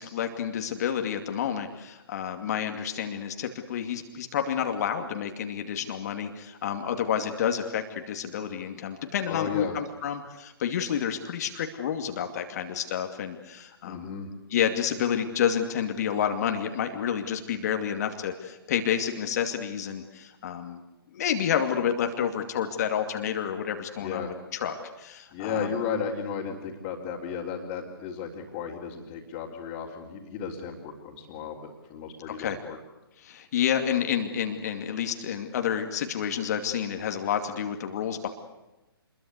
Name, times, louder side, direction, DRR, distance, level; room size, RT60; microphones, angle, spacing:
voice 1, 0.0-14.1 14.5-20.8 21.1-25.7 32.3-32.6 33.2-38.3, left 8 dB, 40° left, 5 dB, 2.5 m, -29 dB
voice 2, 9.3-9.8 13.8-14.3 24.0-24.3 25.3-32.8, left 6 dB, 25° left, -4 dB, 3.8 m, -34 dB
27.0 x 22.0 x 8.3 m, 1.0 s
figure-of-eight pair, 130°, 13 cm